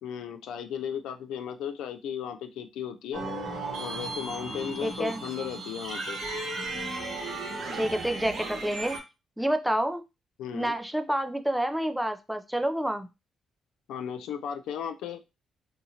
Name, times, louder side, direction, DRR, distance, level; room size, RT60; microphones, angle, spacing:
voice 1, 0.0-3.3 3.8-6.2 10.4-10.7 13.9-15.2, left 8 dB, 85° left, 8 dB, 0.4 m, -35 dB
sound 1, 3.1-9.0, right 2 dB, 75° right, 1.1 m, -35 dB
voice 2, 4.8-5.2 7.7-9.0 9.4-10.0 10.5-13.1, right 1 dB, 5° right, 8 dB, 0.4 m, -28 dB
2.8 x 2.4 x 2.7 m, 0.25 s
cardioid pair, 90°, 0 cm